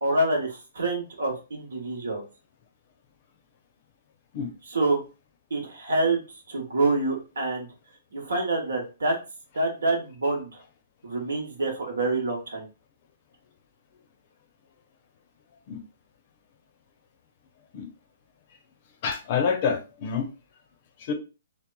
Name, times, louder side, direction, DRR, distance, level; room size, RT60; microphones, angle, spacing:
voice 1, 0.0-2.2 4.7-5.0 5.5-6.2 6.5-7.7 8.1-9.2 9.5-10.6 11.0-12.7, right 2 dB, 80° right, 1.0 m, -26 dB
voice 2, 19.0-20.3 21.0-21.1, left 6 dB, 45° left, 0.6 m, -27 dB
2.9 x 2.1 x 2.2 m
hypercardioid pair, 130°, 0 cm